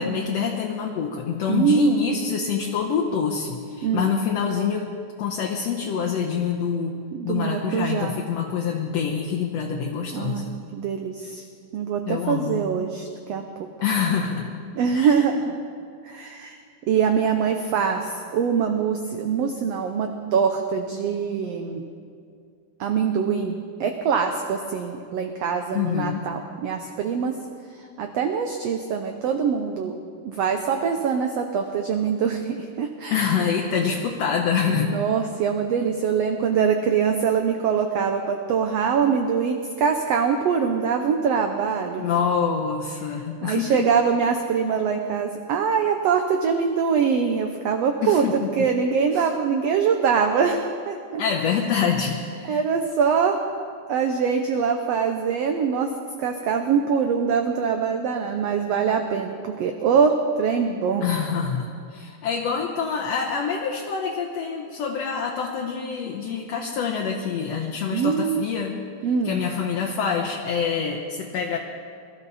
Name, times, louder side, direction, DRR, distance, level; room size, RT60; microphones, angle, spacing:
voice 1, 0.0-4.9 5.2-10.6 12.1-12.6 13.8-14.5 14.9-15.3 25.7-26.3 33.1-35.0 42.0-44.0 48.0-48.5 49.1-49.3 51.2-52.6 61.0-68.8 69.2-71.6, left 6 dB, 65° left, 1 dB, 1.7 m, -26 dB
voice 2, 1.5-2.1 3.8-4.1 7.1-8.2 10.1-10.5 10.7-11.4 11.7-13.7 14.7-15.5 16.0-16.6 16.9-21.8 22.8-27.4 28.0-30.0 30.2-33.5 34.7-42.0 43.4-51.2 52.5-55.9 56.2-61.0 67.8-68.5 69.0-69.4, right 6 dB, 80° right, 5 dB, 1.4 m, -23 dB
22.0 x 13.0 x 4.1 m, 2.3 s
omnidirectional pair, 3.8 m